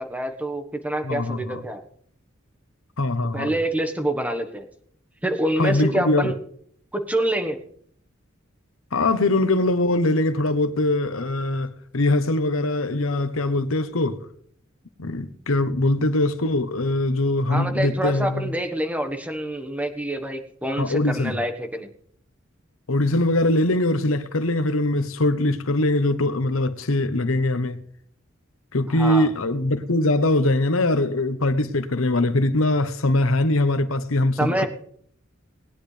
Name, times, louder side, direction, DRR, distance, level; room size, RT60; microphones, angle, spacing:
voice 1, 0.0-1.8 3.3-4.6 5.2-6.4 6.9-7.6 17.5-21.9 28.9-29.3 34.4-34.7, right 1 dB, 5° right, 1.3 m, -26 dB
voice 2, 1.0-1.6 3.0-3.5 5.6-6.3 8.9-14.2 15.0-18.5 20.7-21.4 22.9-27.8 28.7-34.7, left 2 dB, 85° left, 1.0 m, -22 dB
20.0 x 10.5 x 3.4 m
head